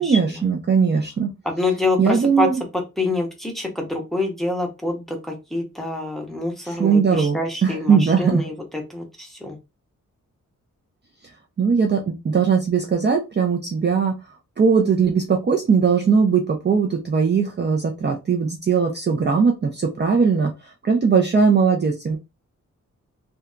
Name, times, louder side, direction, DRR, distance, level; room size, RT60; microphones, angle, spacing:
voice 1, 0.0-1.3 2.0-2.6 6.6-8.5 11.6-22.2, right 5 dB, 35° right, 1 dB, 0.5 m, -19 dB
voice 2, 1.5-2.5 3.0-5.2 5.5-8.5 8.9-9.6, left 2 dB, ahead, 1 dB, 0.8 m, -26 dB
2.7 x 2.2 x 2.3 m, 0.24 s
wide cardioid pair, 105°, 31 cm